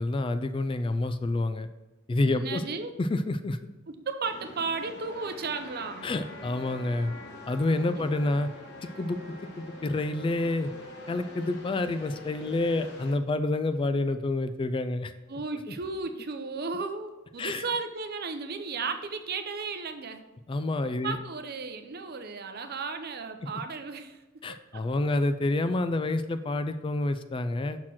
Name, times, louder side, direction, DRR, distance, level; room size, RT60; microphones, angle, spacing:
voice 1, 0.0-1.7 2.1-2.6 3.0-3.6 6.0-7.1 7.5-8.5 9.0-9.2 9.6-10.7 11.1-15.1 17.4-17.6 20.5-21.2 24.4-27.8, left 2 dB, 25° left, 10 dB, 0.3 m, -28 dB
voice 2, 2.3-2.9 3.9-6.1 7.9-8.1 15.3-20.3 21.0-24.8, right 4 dB, 50° right, 7 dB, 0.7 m, -35 dB
sound 1, 4.2-13.1, left 2 dB, 55° left, 1.3 m, -44 dB
6.0 x 4.4 x 5.7 m, 1.1 s
head